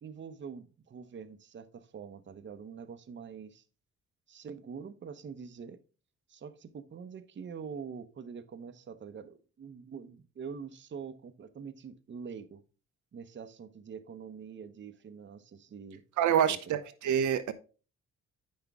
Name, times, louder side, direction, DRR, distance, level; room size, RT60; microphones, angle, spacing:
voice 1, 0.0-3.6 4.3-5.8 6.3-12.6 13.1-16.0 16.5-16.6, right 6 dB, 40° right, 0.8 m, -45 dB
voice 2, 16.2-17.5, right 9 dB, 75° right, 0.8 m, -27 dB
8.5 x 6.1 x 3.5 m
cardioid pair, 90°, 30 cm